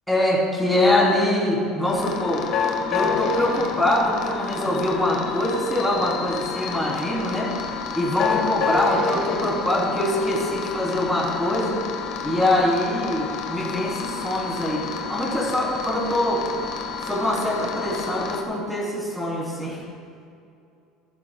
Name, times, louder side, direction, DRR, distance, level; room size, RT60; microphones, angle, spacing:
voice 1, 0.1-2.4 2.9-7.5 7.9-11.8 12.2-14.8 15.1-16.4 17.0-19.8, left 1 dB, ahead, -6 dB, 3.0 m, -23 dB
sound 1, 1.8-18.4, left 5 dB, 50° left, 1.3 m, -29 dB
16.0 x 14.0 x 2.2 m, 2.5 s
cardioid pair, 160°, 0 cm